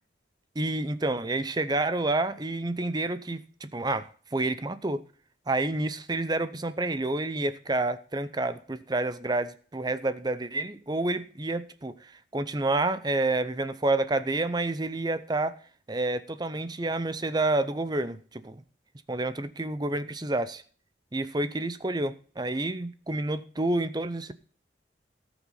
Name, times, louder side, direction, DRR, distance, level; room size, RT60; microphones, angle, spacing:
voice 1, 0.6-5.0 5.5-15.6 15.9-18.6 19.1-20.6 21.1-24.3, right 2 dB, 20° right, 13 dB, 0.6 m, -29 dB
18.0 x 6.0 x 5.6 m, 0.43 s
head